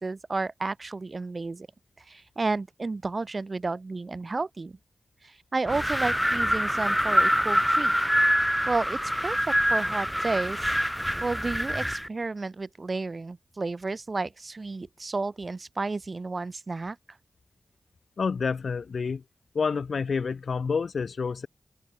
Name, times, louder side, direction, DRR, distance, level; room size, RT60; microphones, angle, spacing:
voice 1, 0.0-1.7 2.1-4.8 5.2-8.0 8.7-10.7 11.2-17.0, right 3 dB, 50° right, 2.7 m, -32 dB
Wind, 5.7-12.1, equal, ahead, 0.4 m, -25 dB
voice 2, 18.2-19.2 19.5-21.5, left 5 dB, 75° left, 2.4 m, -28 dB
cardioid pair, 55°, 0 cm